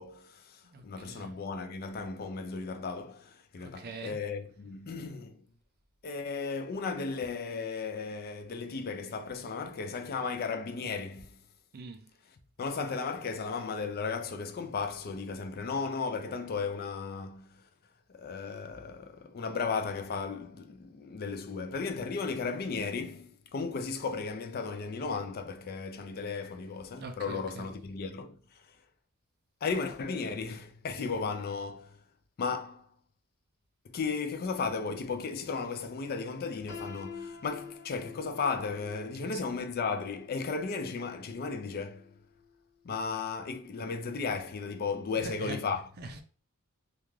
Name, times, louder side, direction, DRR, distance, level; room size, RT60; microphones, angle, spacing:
voice 1, 0.0-5.4 6.0-11.4 12.6-17.6 18.1-28.6 29.6-32.0 32.4-32.9 33.8-42.2 42.8-45.9, left 4 dB, 45° left, 0.4 m, -35 dB
voice 2, 0.6-1.3 3.6-4.2 11.7-12.0 27.0-27.7 39.2-39.4 45.2-45.6 46.0-46.2, right 3 dB, 45° right, 0.5 m, -43 dB
Piano, 36.7-42.5, left 6 dB, 75° left, 0.9 m, -48 dB
2.4 x 2.2 x 3.1 m
head